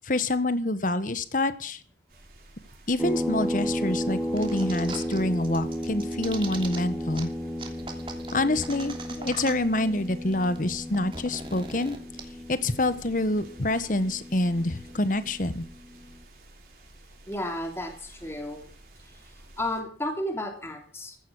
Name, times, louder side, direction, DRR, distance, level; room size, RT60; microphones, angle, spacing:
voice 1, 0.0-1.8 2.9-7.3 8.3-12.0 12.5-15.6, left 2 dB, 50° left, 13 dB, 1.3 m, -27 dB
sound 1, 2.1-19.8, right 2 dB, 55° right, 5.3 m, -53 dB
sound 2, 3.0-16.1, equal, ahead, 1.1 m, -34 dB
sound 3, 4.4-5.2 5.4-6.8 7.1-7.2 7.6-9.8 10.1-10.2 10.3-12.2, right 4 dB, 30° right, 2.9 m, -40 dB
voice 2, 17.3-18.6 19.0-21.2, left 1 dB, 15° left, 4 dB, 2.7 m, -33 dB
15.5 x 12.0 x 6.2 m, 0.43 s
head